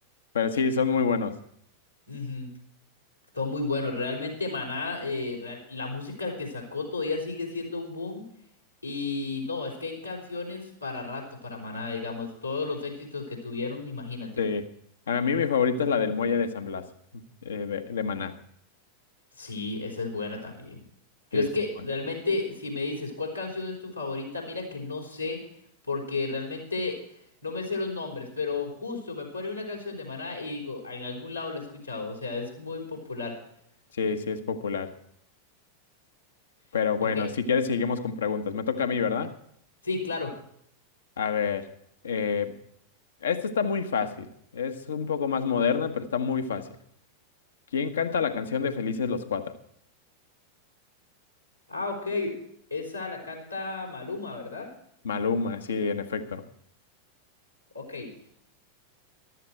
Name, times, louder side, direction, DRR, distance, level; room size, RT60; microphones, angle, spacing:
voice 1, 0.3-1.4 14.4-14.6 15.1-16.9 17.4-18.3 21.3-21.5 34.0-35.0 36.7-39.3 41.2-41.7 42.0-42.6 43.2-44.3 44.5-46.7 47.7-49.5 55.0-56.4, left 6 dB, 65° left, 8 dB, 1.2 m, -27 dB
voice 2, 2.1-2.5 3.3-8.2 8.8-14.4 19.4-20.8 21.3-25.4 25.9-27.0 27.4-33.3 37.1-37.3 39.8-40.3 51.7-52.3 52.7-54.7 57.7-58.1, left 3 dB, 90° left, -2 dB, 4.1 m, -33 dB
14.0 x 12.5 x 4.5 m, 0.69 s
figure-of-eight pair, 90°, 0 cm